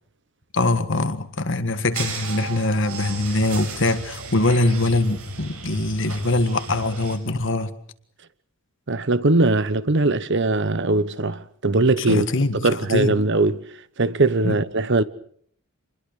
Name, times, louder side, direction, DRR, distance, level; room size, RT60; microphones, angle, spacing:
voice 1, 0.5-7.7 12.0-13.1 14.4-14.6, left 2 dB, 60° left, 1.7 m, -23 dB
sound 1, 1.9-7.2, right 3 dB, 80° right, 6.4 m, -34 dB
voice 2, 8.9-12.3 12.5-13.6 14.0-15.0, right 2 dB, 55° right, 1.0 m, -20 dB
27.5 x 21.0 x 6.7 m
head